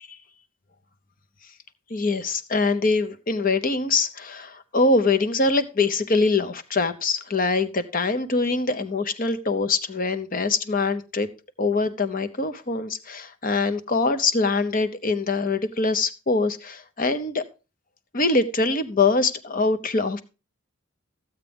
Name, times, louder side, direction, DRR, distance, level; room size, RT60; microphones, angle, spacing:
voice 1, 1.9-11.3 11.6-17.4 18.1-20.2, left 3 dB, 40° left, 11 dB, 0.8 m, -23 dB
14.0 x 8.1 x 3.4 m, 0.31 s
head